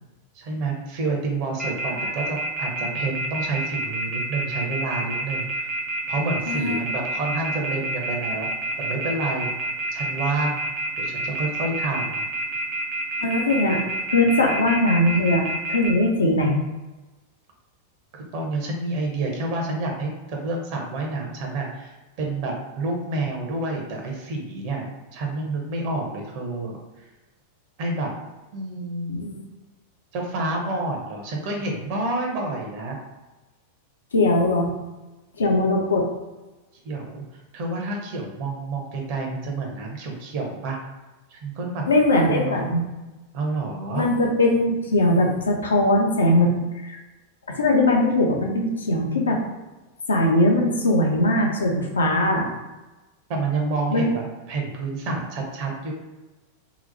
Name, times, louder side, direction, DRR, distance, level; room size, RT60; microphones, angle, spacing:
voice 1, 0.3-5.7 6.1-8.5 8.8-9.5 9.9-10.6 11.0-12.3 18.1-24.9 25.1-26.8 27.8-28.1 28.5-29.2 30.1-33.0 36.8-40.8 41.3-41.8 42.3-42.7 43.3-44.0 53.3-55.9, right 2 dB, 45° right, 1 dB, 0.7 m, -29 dB
Telephone, 1.6-15.9, right 2 dB, 5° right, 0.5 m, -28 dB
voice 2, 6.5-6.9 13.2-13.8 14.1-16.6 29.1-29.4 34.1-34.7 35.4-36.1 41.9-42.8 43.9-46.5 46.8-47.0 47.5-49.4 50.1-52.5 53.9-54.1, left 1 dB, 70° left, 1 dB, 0.5 m, -20 dB
2.8 x 2.1 x 2.7 m, 1.1 s
figure-of-eight pair, 90°, 0 cm